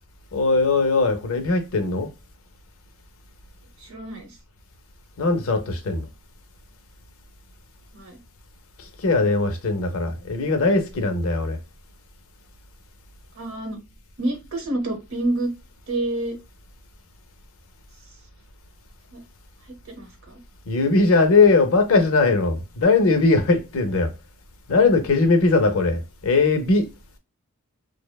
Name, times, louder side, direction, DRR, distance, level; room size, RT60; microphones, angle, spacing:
voice 1, 0.3-2.1 5.2-6.1 9.0-11.6 20.7-24.1 24.7-26.9, left 3 dB, 65° left, 0.5 m, -20 dB
voice 2, 3.8-4.4 7.9-8.2 13.4-13.8 14.2-15.5 15.9-16.4 19.1-19.2 19.9-20.4, right 1 dB, 65° right, 0.8 m, -28 dB
2.6 x 2.0 x 2.2 m
head